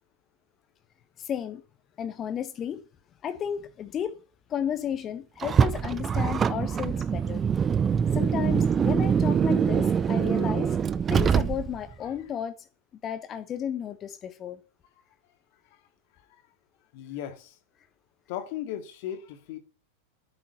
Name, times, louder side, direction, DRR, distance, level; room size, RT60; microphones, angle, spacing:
voice 1, 1.2-1.6 2.0-2.8 3.2-4.2 4.5-7.4 8.1-10.8 11.1-12.5 13.0-14.6, left 9 dB, 25° left, 1.1 m, -33 dB
Car, 5.4-11.9, right 7 dB, 20° right, 0.6 m, -24 dB
voice 2, 16.9-17.6 18.3-19.6, left 11 dB, 50° left, 2.3 m, -37 dB
11.5 x 9.7 x 6.9 m
figure-of-eight pair, 90°, 0 cm